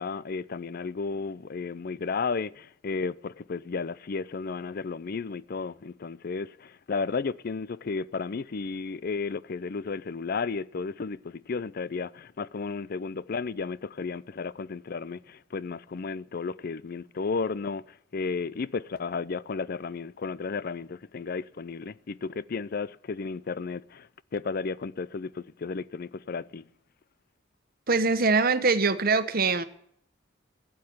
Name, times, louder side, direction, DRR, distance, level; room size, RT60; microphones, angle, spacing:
voice 1, 0.0-26.7, left 4 dB, 50° left, 0.5 m, -33 dB
voice 2, 27.9-29.6, right 4 dB, 50° right, 1.1 m, -23 dB
13.0 x 8.7 x 9.2 m
head